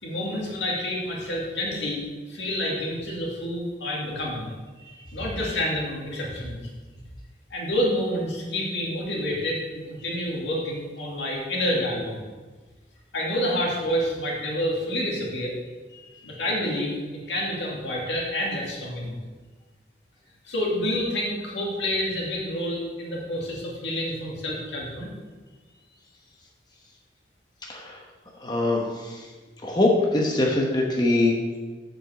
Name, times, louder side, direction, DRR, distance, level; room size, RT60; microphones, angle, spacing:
voice 1, 0.0-2.0 2.3-4.5 5.1-6.6 7.5-9.6 9.9-12.2 13.1-15.5 16.2-16.9 17.3-19.2 20.4-25.1, equal, 85° left, -3 dB, 2.4 m, -28 dB
voice 2, 16.0-16.3 27.7-28.0 28.4-29.3 29.6-31.6, left 2 dB, 25° left, -1 dB, 1.1 m, -24 dB
7.2 x 5.3 x 6.8 m, 1.3 s
head